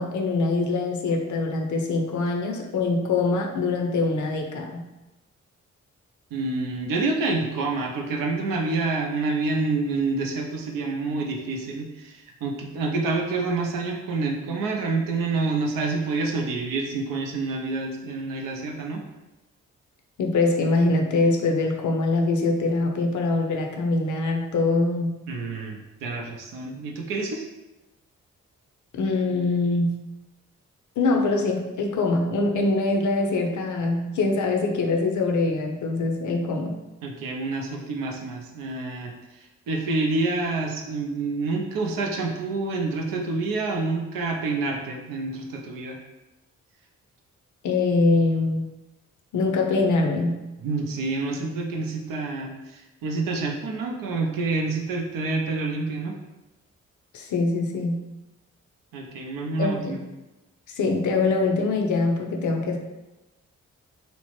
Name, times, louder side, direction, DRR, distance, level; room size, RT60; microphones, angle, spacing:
voice 1, 0.0-4.9 20.2-25.2 29.0-29.9 31.0-36.8 47.6-48.6 49.3-50.4 57.1-58.0 59.6-60.0 60.8-62.8, left 3 dB, 60° left, 2 dB, 0.6 m, -23 dB
voice 2, 6.3-19.0 25.3-27.4 37.0-46.0 50.6-56.1 58.9-60.0, right 3 dB, 80° right, 1 dB, 0.5 m, -28 dB
2.9 x 2.0 x 3.0 m, 1.0 s
hypercardioid pair, 40°, 33 cm